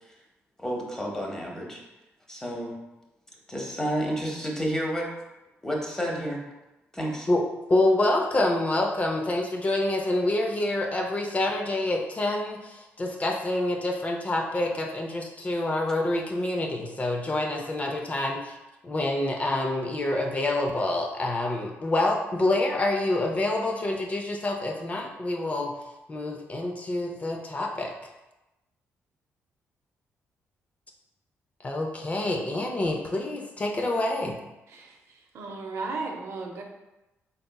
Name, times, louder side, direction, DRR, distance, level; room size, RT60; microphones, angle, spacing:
voice 1, 0.6-1.8 2.3-2.8 3.5-5.1 5.6-6.4 6.9-7.3, equal, 10° left, -1 dB, 0.8 m, -30 dB
voice 2, 7.3-18.5 18.8-25.7 26.1-27.9 31.6-34.4, left 2 dB, 30° left, 2 dB, 0.5 m, -27 dB
voice 3, 34.7-36.6, right 3 dB, 65° right, 2 dB, 0.6 m, -35 dB
4.0 x 3.6 x 2.2 m, 0.99 s
cardioid pair, 95°, 5 cm